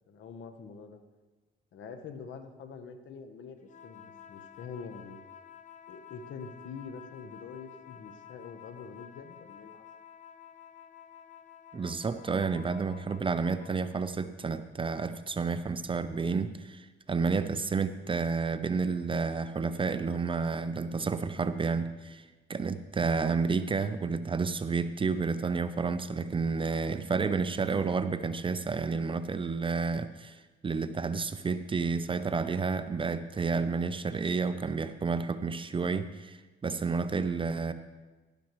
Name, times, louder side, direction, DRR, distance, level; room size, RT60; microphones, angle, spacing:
voice 1, 0.1-1.0 1.7-5.2 5.9-9.9, left 5 dB, 70° left, 8 dB, 1.0 m, -45 dB
sound 1, 3.6-13.8, left 9 dB, 40° left, 0.7 m, -51 dB
voice 2, 11.7-37.7, right 4 dB, 25° right, 11 dB, 0.5 m, -30 dB
12.0 x 11.0 x 3.1 m, 1.2 s
cardioid pair, 90°, 20 cm